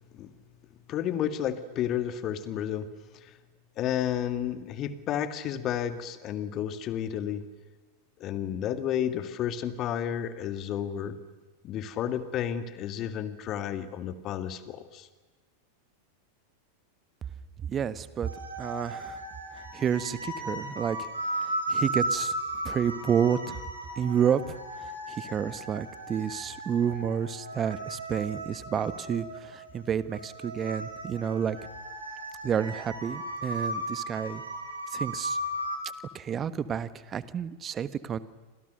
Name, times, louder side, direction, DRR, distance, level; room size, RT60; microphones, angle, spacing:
voice 1, 0.9-2.9 3.1-3.3 3.8-7.4 8.2-11.2 11.6-15.1, left 10 dB, 35° left, 11 dB, 2.1 m, -31 dB
voice 2, 17.7-18.3 18.6-19.2 19.7-21.1 21.7-22.3 22.6-23.6 24.0-31.6 32.4-34.4 34.9-35.4 36.1-38.2, right 8 dB, 25° right, 15 dB, 1.3 m, -30 dB
sound 1, 18.2-35.8, right 1 dB, 80° right, 6.1 m, -36 dB
29.5 x 26.5 x 6.6 m, 1.2 s
figure-of-eight pair, 90°, 0 cm